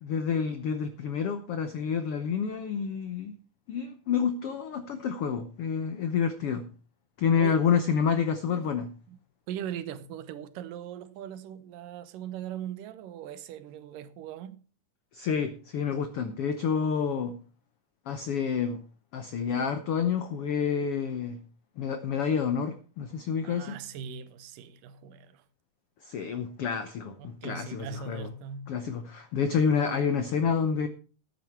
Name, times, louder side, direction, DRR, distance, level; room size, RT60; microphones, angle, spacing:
voice 1, 0.0-3.3 3.7-6.6 7.2-8.9 15.1-17.4 18.1-18.8 19.1-21.4 21.8-23.8 26.0-28.3 28.7-30.9, left 6 dB, 85° left, 1.2 m, -28 dB
voice 2, 9.5-14.6 23.4-25.4 27.2-28.7, right 8 dB, 80° right, 2.5 m, -40 dB
13.0 x 9.4 x 4.6 m
omnidirectional pair, 3.9 m